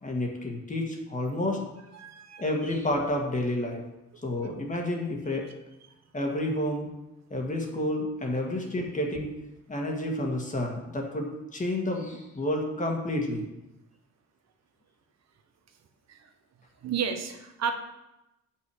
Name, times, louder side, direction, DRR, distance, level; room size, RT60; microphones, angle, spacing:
voice 1, 0.0-1.6 2.4-3.8 4.2-5.5 6.1-6.9 7.3-9.3 9.7-13.5, left 1 dB, 25° left, 1 dB, 1.7 m, -30 dB
voice 2, 1.9-2.5 16.1-16.3 16.8-17.7, right 7 dB, 60° right, 6 dB, 1.2 m, -32 dB
7.9 x 5.9 x 4.9 m, 0.94 s
cardioid pair, 90°, 30 cm